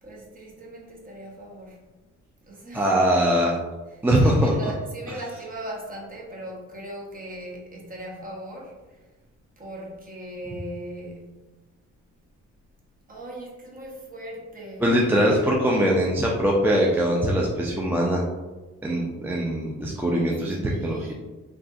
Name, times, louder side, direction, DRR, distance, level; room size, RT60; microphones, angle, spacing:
voice 1, 0.0-1.8 2.4-2.9 4.2-9.0 9.6-11.4 13.1-14.9 20.6-21.1, right 1 dB, 30° right, -2 dB, 0.9 m, -38 dB
voice 2, 2.7-3.6 4.0-4.5 14.8-18.2 18.8-21.1, equal, 5° right, -3 dB, 0.4 m, -22 dB
3.7 x 2.5 x 2.3 m, 1.2 s
cardioid pair, 90°, 30 cm